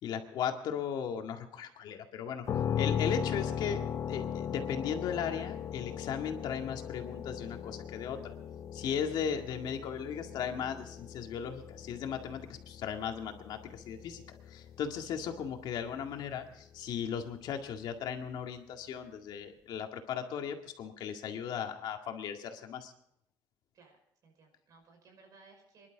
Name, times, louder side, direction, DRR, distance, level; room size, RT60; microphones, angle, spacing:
voice 1, 0.0-2.5 2.8-3.8 4.1-8.3 8.7-14.2 14.5-22.9, left 7 dB, 70° left, 4 dB, 1.9 m, -37 dB
sound 1, 2.4-16.2, left 8 dB, 40° left, 0.8 m, -38 dB
voice 2, 9.2-9.6 21.2-21.5 23.7-24.0 24.2-25.9, right 4 dB, 50° right, 4 dB, 5.5 m, -60 dB
26.0 x 11.5 x 3.9 m, 0.75 s
cardioid pair, 175°, 8 cm